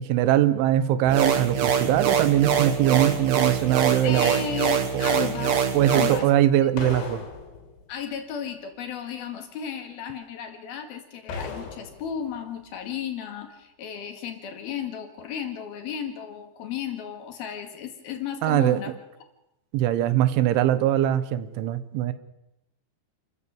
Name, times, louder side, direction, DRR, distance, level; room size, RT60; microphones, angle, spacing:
voice 1, 0.0-4.4 5.2-5.3 5.7-7.2 18.4-18.8 19.7-22.1, right 12 dB, 85° right, 14 dB, 3.6 m, -22 dB
sound 1, 1.1-6.2, right 7 dB, 55° right, 2.2 m, -24 dB
sound 2, 3.4-4.3 6.8-8.0 11.3-12.4 12.6-12.7, left 4 dB, 75° left, 5.5 m, -38 dB
voice 2, 4.0-6.3 7.9-18.9, left 8 dB, 60° left, 6 dB, 3.6 m, -34 dB
29.5 x 14.5 x 7.2 m, 0.89 s
omnidirectional pair, 5.3 m